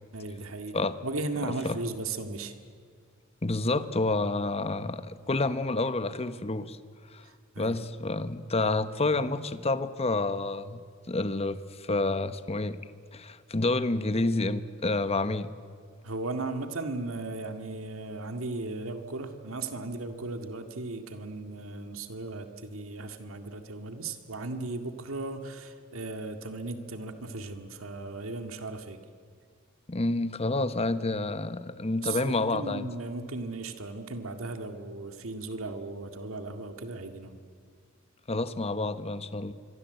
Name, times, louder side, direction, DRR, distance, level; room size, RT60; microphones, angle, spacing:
voice 1, 0.1-0.8 1.0-2.5 7.2-7.8 8.6-8.7 9.1-9.3 16.0-29.0 32.0-37.4, right 2 dB, 80° right, 7 dB, 2.0 m, -36 dB
voice 2, 3.4-6.8 7.1-7.2 7.6-12.8 13.1-15.5 29.9-32.9 38.3-39.5, left 2 dB, 30° left, 12 dB, 1.1 m, -29 dB
26.0 x 23.5 x 8.0 m, 2.1 s
head